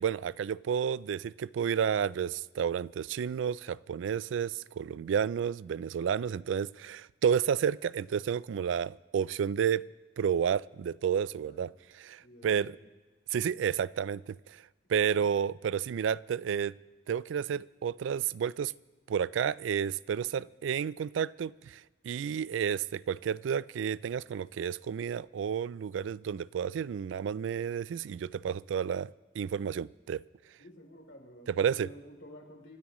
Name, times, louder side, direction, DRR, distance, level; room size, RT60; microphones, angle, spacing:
voice 1, 0.0-9.8 10.2-11.7 12.0-12.8 13.3-14.4 14.9-16.7 17.1-18.7 19.1-30.2 31.6-31.9, right 7 dB, 85° right, 0.3 m, -31 dB
voice 2, 11.3-11.8 12.2-12.9 20.1-20.4 22.2-22.4 30.6-32.8, equal, 75° left, 3.2 m, -52 dB
26.5 x 12.5 x 3.1 m
head